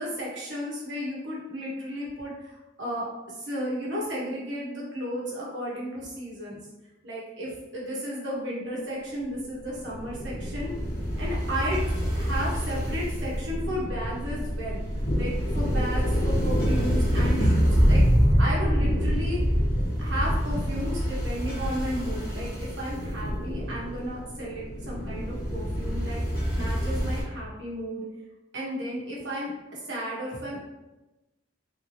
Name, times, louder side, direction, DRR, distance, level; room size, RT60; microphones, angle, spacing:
voice 1, 0.0-3.1 3.4-6.6 7.0-10.7 11.2-11.8 12.1-14.8 15.2-18.0 18.4-19.4 20.0-26.2 26.5-28.0 28.5-30.7, equal, 60° right, -5 dB, 1.1 m, -33 dB
sound 1, 9.6-27.2, equal, 45° left, 1.3 m, -26 dB
3.4 x 2.8 x 3.1 m, 1.0 s
head